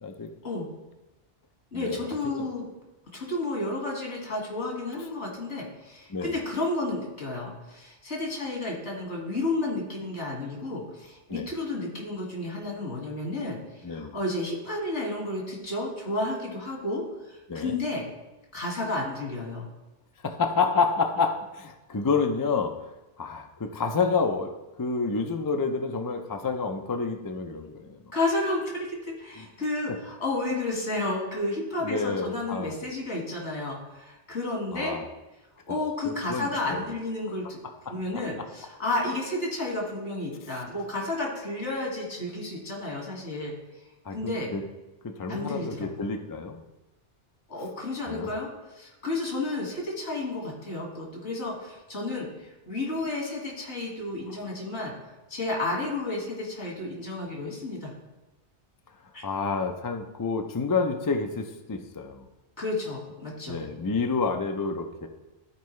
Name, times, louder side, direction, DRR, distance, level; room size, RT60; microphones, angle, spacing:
voice 1, 1.7-2.7 3.1-13.6 13.9-18.1 18.5-19.7 28.1-34.9 35.7-37.6 37.9-43.5 44.1-44.5 45.3-46.0 47.5-48.5 48.8-52.3 52.7-54.9 55.3-57.9 59.1-59.2 62.6-63.7, left 2 dB, 75° left, -2 dB, 2.3 m, -31 dB
voice 2, 13.8-14.2 17.5-17.8 20.2-22.8 23.2-24.5 24.8-28.0 29.4-29.5 31.8-32.7 34.7-35.0 36.0-36.8 37.9-38.2 40.5-40.6 44.0-44.6 45.0-46.6 48.0-48.3 54.3-54.4 59.2-62.3 63.5-65.1, left 4 dB, 30° left, 5 dB, 0.3 m, -29 dB
12.5 x 4.6 x 3.2 m, 1.1 s
omnidirectional pair, 1.2 m